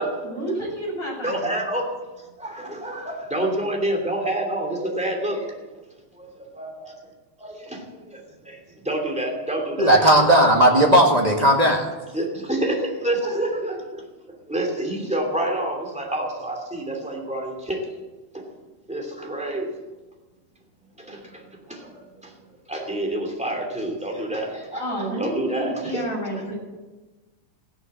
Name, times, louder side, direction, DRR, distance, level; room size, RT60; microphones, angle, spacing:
voice 1, 0.2-1.5 24.7-26.5, right 1 dB, 20° left, -4 dB, 7.0 m, -30 dB
voice 2, 1.2-1.9 2.4-5.5 6.2-6.3 6.6-6.9 7.4-7.8 8.5-8.6 8.8-10.0 12.1-13.8 14.5-17.8 18.3-18.5 18.9-19.7 21.1-21.2 21.7-21.9 22.7-24.9 25.2-26.0, right 1 dB, ahead, 1 dB, 2.4 m, -27 dB
voice 3, 9.8-11.9, right 1 dB, 30° right, 1 dB, 0.7 m, -16 dB
16.0 x 11.5 x 7.8 m, 1.2 s
omnidirectional pair, 3.8 m